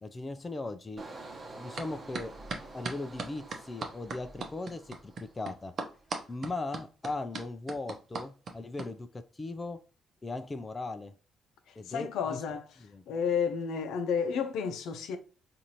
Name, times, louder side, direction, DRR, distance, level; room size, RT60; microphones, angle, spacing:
voice 1, 0.0-1.1 1.6-2.3 2.7-5.7 6.3-9.8 10.2-11.1 11.8-12.4 12.8-13.0, left 2 dB, 25° left, 0.4 m, -38 dB
Engine, 1.0-5.6 6.0-6.3, right 2 dB, 35° right, 1.1 m, -48 dB
sound 1, 1.8-1.9 2.1-8.9, right 4 dB, 55° right, 0.7 m, -38 dB
voice 2, 11.8-12.7 13.1-15.2, left 6 dB, 80° left, 0.6 m, -31 dB
4.0 x 2.6 x 2.9 m
cardioid pair, 90°, 0 cm